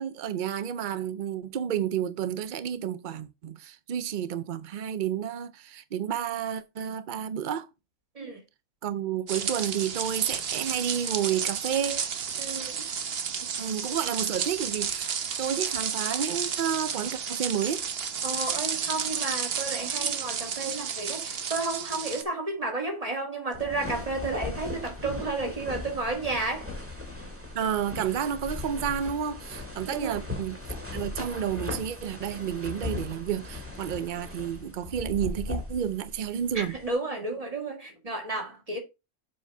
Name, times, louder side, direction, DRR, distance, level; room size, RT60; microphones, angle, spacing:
voice 1, 0.0-7.7 8.8-12.0 13.6-17.8 27.5-30.6 30.9-36.8, right 9 dB, 80° right, 0.4 m, -31 dB
sound 1, 9.3-22.2, right 7 dB, 50° right, 0.9 m, -32 dB
voice 2, 12.4-12.8 13.6-13.9 18.2-26.7 29.9-30.2 36.5-38.8, right 3 dB, 25° right, 2.1 m, -32 dB
sound 2, 23.5-36.9, left 2 dB, 10° right, 2.2 m, -38 dB
7.3 x 4.6 x 5.4 m
omnidirectional pair, 1.5 m